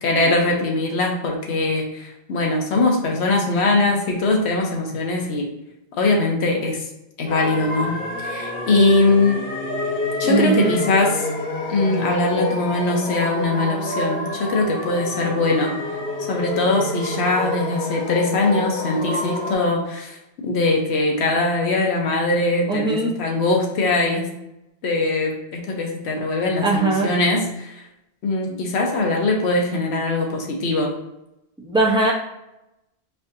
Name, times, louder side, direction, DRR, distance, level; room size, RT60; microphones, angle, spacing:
voice 1, 0.0-5.5 6.0-6.8 7.2-9.4 10.2-11.3 11.7-15.7 16.3-20.2 20.4-24.3 24.8-27.8 28.2-30.9, left 2 dB, 80° left, 1 dB, 1.0 m, -21 dB
sound 1, 7.3-19.5, left 2 dB, 50° left, 0.9 m, -28 dB
voice 2, 10.2-10.8 22.7-23.1 26.6-27.1 31.6-32.1, right 2 dB, 5° right, -2 dB, 0.4 m, -20 dB
4.7 x 2.5 x 2.6 m, 0.91 s
omnidirectional pair, 1.1 m